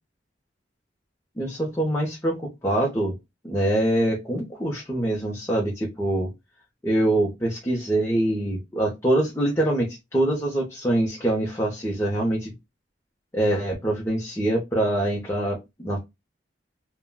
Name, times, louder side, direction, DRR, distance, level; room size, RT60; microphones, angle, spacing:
voice 1, 1.4-3.1 3.4-6.3 6.8-12.5 13.3-16.0, right 1 dB, 15° left, -2 dB, 0.6 m, -24 dB
3.4 x 2.1 x 2.2 m, 0.21 s
head